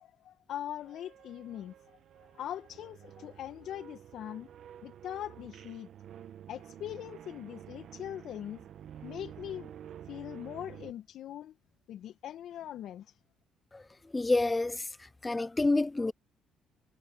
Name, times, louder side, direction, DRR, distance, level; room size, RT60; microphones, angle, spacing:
voice 1, 0.0-1.7 2.3-4.5 4.8-5.9 6.5-8.6 8.9-9.8 10.0-11.5 11.9-13.2, left 11 dB, 65° left, 1.7 m, -41 dB
sound 1, 0.8-10.9, right 10 dB, 60° right, 1.7 m, -50 dB
voice 2, 14.1-14.8 15.2-16.1, left 2 dB, 20° left, 0.5 m, -28 dB
hypercardioid pair, 55°, 0 cm